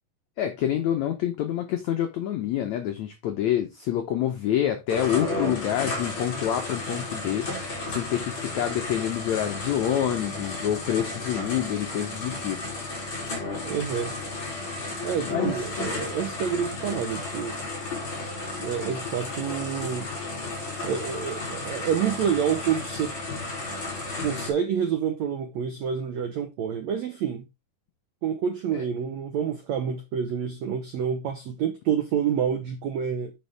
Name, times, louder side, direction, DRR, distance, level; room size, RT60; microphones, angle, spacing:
voice 1, 0.4-7.5 7.9-12.6 15.3-15.5 28.7-28.8, left 11 dB, 80° left, 1.6 m, -27 dB
sound 1, 4.9-24.5, left 2 dB, 35° left, 3.6 m, -33 dB
voice 2, 13.6-14.2 15.0-17.6 18.6-20.1 20.8-23.2 24.2-27.4 28.2-33.3, right 8 dB, 80° right, 1.6 m, -28 dB
9.6 x 5.2 x 3.5 m
omnidirectional pair, 4.4 m